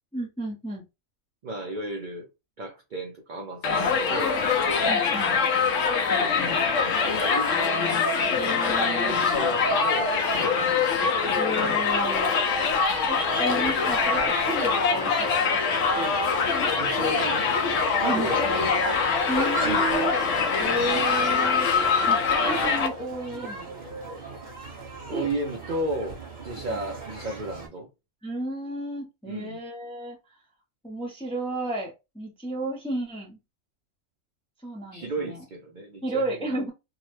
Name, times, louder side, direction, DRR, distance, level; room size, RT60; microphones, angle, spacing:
voice 1, 0.1-0.9 4.9-5.4 8.4-9.2 11.3-12.3 13.1-16.2 18.0-18.5 18.8-19.0 19.3-20.1 20.6-21.7 22.1-23.7 25.1-25.3 28.2-30.4 30.8-33.4 34.6-35.4 36.0-36.7, right 1 dB, 5° left, 0.4 m, -32 dB
voice 2, 1.4-2.3 2.6-4.4 6.2-7.9 8.8-11.3 16.8-17.5 18.0-18.8 19.6-20.0 25.1-27.9 29.3-29.6 34.9-36.7, right 1 dB, 70° right, 0.4 m, -34 dB
Crowd, 3.6-22.9, left 5 dB, 70° left, 1.0 m, -24 dB
sound 1, 14.1-27.7, right 3 dB, 35° right, 1.0 m, -39 dB
2.7 x 2.0 x 3.1 m
omnidirectional pair, 1.5 m